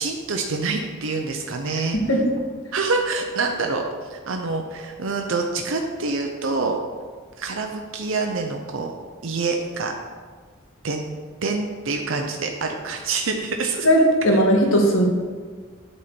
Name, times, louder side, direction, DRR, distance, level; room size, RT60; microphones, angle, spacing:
voice 1, 0.0-2.0 2.7-3.8 4.1-6.8 7.4-8.9 9.2-9.9 10.8-11.0 11.4-13.9, right 3 dB, 70° right, 3 dB, 0.7 m, -26 dB
voice 2, 13.8-15.1, equal, 70° left, 0 dB, 1.6 m, -17 dB
8.4 x 4.3 x 6.8 m, 1.5 s
head